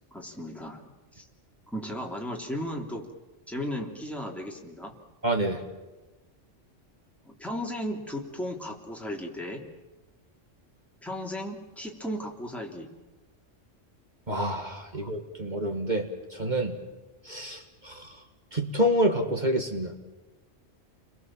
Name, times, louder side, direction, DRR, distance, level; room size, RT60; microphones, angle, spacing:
voice 1, 0.1-0.8 1.1-1.3 1.7-3.1 3.5-4.9 7.2-9.6 11.0-12.9 15.0-15.1, equal, ahead, -1 dB, 3.2 m, -35 dB
voice 2, 5.2-5.6 14.3-16.8 17.3-18.1 18.5-19.9, equal, 35° right, 3 dB, 2.2 m, -28 dB
30.0 x 22.0 x 7.5 m, 1.1 s
omnidirectional pair, 1.3 m